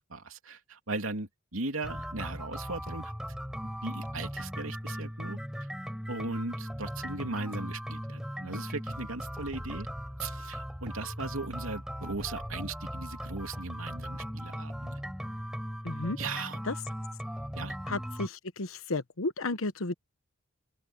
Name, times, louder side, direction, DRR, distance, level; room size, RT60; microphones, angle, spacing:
voice 1, 0.0-3.1 3.8-5.4 6.1-9.9 10.2-15.0 16.2-16.6 17.5-17.8, right 3 dB, 80° right, 2.9 m, -38 dB
sound 1, 1.8-18.3, equal, 5° right, 4.6 m, -38 dB
voice 2, 15.8-16.2 16.7-16.8 17.9-19.9, left 2 dB, 80° left, 1.1 m, -33 dB
open air
head